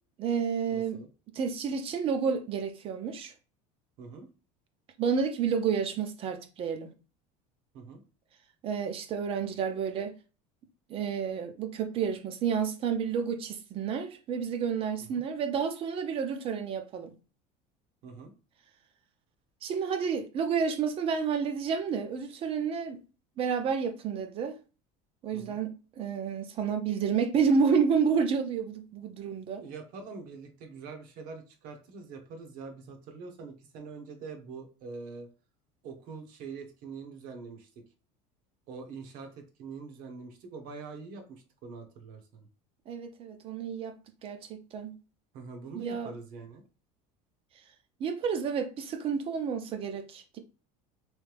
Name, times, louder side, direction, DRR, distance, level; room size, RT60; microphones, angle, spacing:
voice 1, 0.2-1.0 1.3-3.3 5.0-6.9 8.6-10.2 10.9-17.1 19.6-23.0 23.4-24.6 25.2-29.6 42.9-44.0 44.2-45.0 45.7-46.1 48.0-50.4, right 6 dB, 35° right, 0.6 m, -30 dB
voice 2, 0.7-1.1 4.0-4.3 7.7-8.0 15.0-15.2 18.0-18.3 25.3-25.6 29.6-35.3 35.8-37.7 38.7-42.5 45.3-46.6, right 4 dB, 55° right, 1.0 m, -44 dB
3.3 x 3.2 x 3.3 m
cardioid pair, 155°, 17 cm